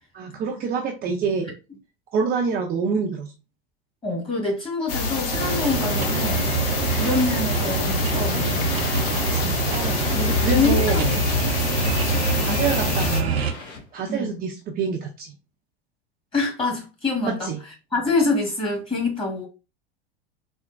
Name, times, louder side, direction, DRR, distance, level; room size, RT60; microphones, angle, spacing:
voice 1, 0.1-1.5 2.1-3.3 9.2-11.1 12.4-13.4 13.9-15.3 17.3-17.6, right 5 dB, 30° right, 0.6 m, -27 dB
voice 2, 4.0-6.5 7.0-8.8 10.1-11.2 14.1-14.4 16.3-17.5 17.9-19.5, left 3 dB, 15° left, 1.8 m, -25 dB
sound 1, 4.9-13.2, left 5 dB, 65° left, 0.7 m, -26 dB
sound 2, 5.1-14.0, left 2 dB, 45° left, 1.7 m, -37 dB
sound 3, 5.3-13.5, right 6 dB, 85° right, 0.6 m, -26 dB
4.3 x 2.0 x 2.5 m
hypercardioid pair, 85°, 30 cm